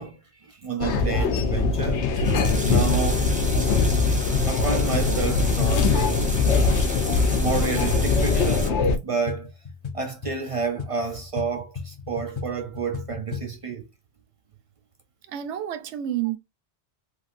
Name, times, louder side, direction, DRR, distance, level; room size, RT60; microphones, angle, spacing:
voice 1, 0.0-2.1 2.6-3.3 4.3-6.4 7.3-9.5 9.9-13.8, right 5 dB, 50° right, 0.4 m, -30 dB
sound 1, 0.8-9.0, left 4 dB, 80° left, 0.9 m, -22 dB
sound 2, 2.1-8.7, right 1 dB, 10° right, 0.7 m, -34 dB
sound 3, 3.1-13.6, left 5 dB, 45° left, 0.3 m, -38 dB
voice 2, 15.3-16.4, right 11 dB, 85° right, 0.9 m, -29 dB
3.2 x 2.4 x 2.4 m
omnidirectional pair, 1.1 m